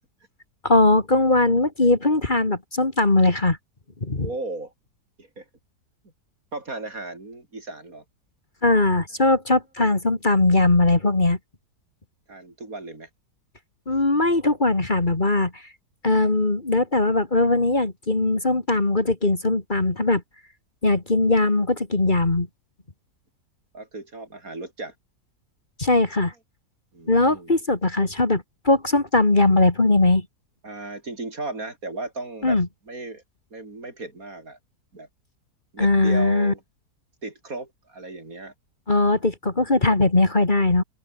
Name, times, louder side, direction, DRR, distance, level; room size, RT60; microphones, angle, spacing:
voice 1, 0.6-3.6 4.0-4.3 8.6-11.4 13.9-15.6 16.0-20.2 20.8-22.5 25.8-26.3 27.1-30.3 32.4-32.7 35.8-36.5 38.9-40.8, left 2 dB, 30° left, 2.4 m, -20 dB
voice 2, 4.2-4.7 5.2-5.5 6.5-8.0 12.3-13.1 23.7-24.9 26.9-27.5 30.6-32.6 32.9-33.2 33.5-34.6 34.9-35.1 35.7-36.6 37.2-38.5, right 2 dB, 55° right, 5.3 m, -35 dB
open air
omnidirectional pair, 1.7 m